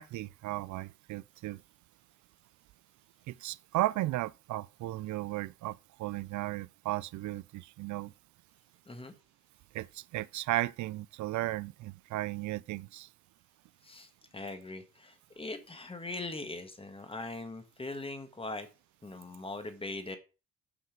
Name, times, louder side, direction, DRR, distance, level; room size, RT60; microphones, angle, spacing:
voice 1, 0.0-1.6 3.3-8.1 9.7-13.1, right 16 dB, 75° right, 0.5 m, -35 dB
voice 2, 14.3-18.7 19.0-20.2, left 2 dB, 20° left, 1.5 m, -41 dB
6.3 x 5.5 x 5.2 m
cardioid pair, 90°, 30 cm